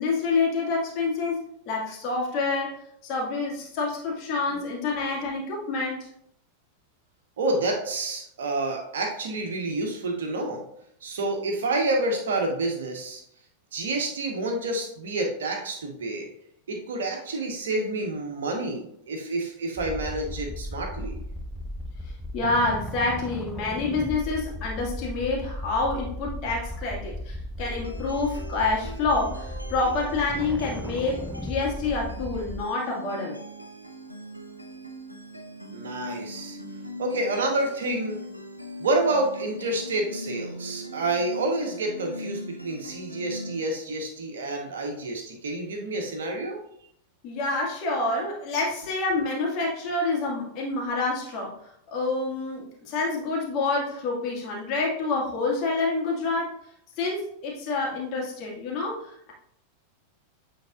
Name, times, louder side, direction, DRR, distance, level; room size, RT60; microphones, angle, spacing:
voice 1, 0.0-6.1 22.0-33.4 47.2-56.6 57.0-59.3, left 3 dB, 40° left, -3 dB, 2.1 m, -28 dB
voice 2, 7.4-10.6 11.0-13.2 13.7-16.3 16.7-21.2 35.7-36.6 37.0-38.2 38.8-46.6, right 2 dB, 60° right, 2 dB, 1.4 m, -28 dB
sound 1, 19.8-32.6, left 1 dB, ahead, 0.3 m, -36 dB
sound 2, 27.6-43.6, equal, 90° right, 0.7 m, -40 dB
9.0 x 4.0 x 2.6 m, 0.72 s
figure-of-eight pair, 90°, 0 cm